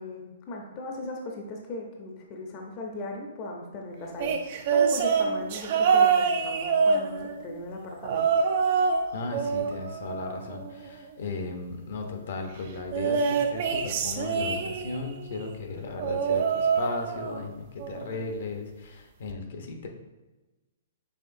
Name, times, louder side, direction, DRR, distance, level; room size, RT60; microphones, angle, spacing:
voice 1, 0.0-8.3, left 2 dB, 35° left, 1 dB, 0.6 m, -38 dB
sound 1, 4.2-7.5 8.0-9.0 9.3-10.9 12.9-15.1 16.0-17.5 17.8-18.2 19.3-19.4, right 6 dB, 45° right, 0.5 m, -25 dB
voice 2, 9.1-19.9, left 3 dB, 65° left, 3 dB, 0.7 m, -36 dB
5.7 x 3.3 x 2.6 m, 1.1 s
hypercardioid pair, 150°, 0 cm